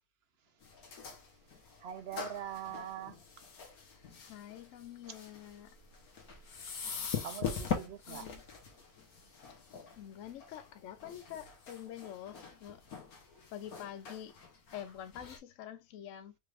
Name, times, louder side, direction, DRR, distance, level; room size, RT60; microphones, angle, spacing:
sound 1, 0.6-15.4, left 6 dB, 85° left, 1.6 m, -43 dB
voice 1, 1.8-3.2 7.2-8.3, right 10 dB, 65° right, 0.6 m, -42 dB
voice 2, 3.9-5.8 8.1-8.4 9.5-12.8 13.5-14.4 14.7-16.4, left 10 dB, 70° left, 0.9 m, -47 dB
5.0 x 3.3 x 2.4 m
omnidirectional pair, 1.5 m